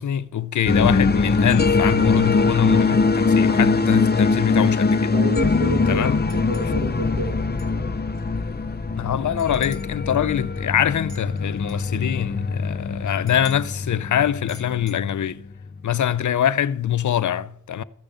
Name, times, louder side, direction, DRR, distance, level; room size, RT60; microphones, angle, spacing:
voice 1, 0.0-5.1 5.9-6.2 9.0-15.4 15.8-17.8, left 10 dB, 60° left, 0.7 m, -24 dB
sound 1, 0.7-15.8, left 4 dB, 30° left, 1.0 m, -22 dB
voice 2, 5.1-7.9, right 3 dB, 75° right, 3.2 m, -31 dB
sound 2, 6.3-6.8 7.6-7.7 8.2-8.3 9.4-9.9 11.1-11.9 13.3-13.8 14.5-15.0, left 1 dB, 10° left, 2.7 m, -47 dB
14.0 x 6.7 x 8.0 m
cardioid pair, 50°, 33 cm